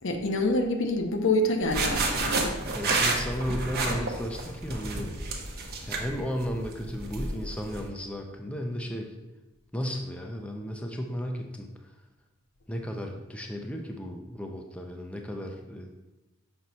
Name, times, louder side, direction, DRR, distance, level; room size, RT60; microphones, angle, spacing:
voice 1, 0.0-2.5, left 2 dB, 65° left, 5 dB, 0.8 m, -26 dB
sound 1, 1.6-7.9, right 3 dB, 45° right, 0.9 m, -30 dB
voice 2, 2.7-5.2 5.8-9.1 9.7-11.7 12.7-15.9, equal, 5° left, 2 dB, 0.5 m, -34 dB
6.1 x 5.3 x 4.1 m, 1.1 s
head